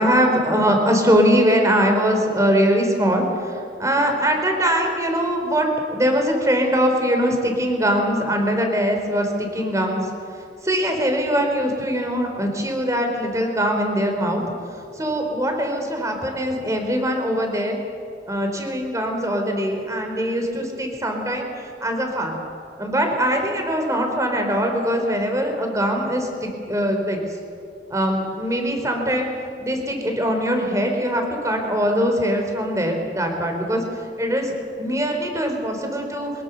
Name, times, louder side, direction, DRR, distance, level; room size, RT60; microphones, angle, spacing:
voice 1, 0.0-10.1 10.6-14.4 14.9-17.8 18.3-22.4 22.8-27.2 27.9-29.3 29.6-34.5 34.8-36.3, equal, 20° right, 3 dB, 3.6 m, -22 dB
23.5 x 20.5 x 6.9 m, 2.3 s
head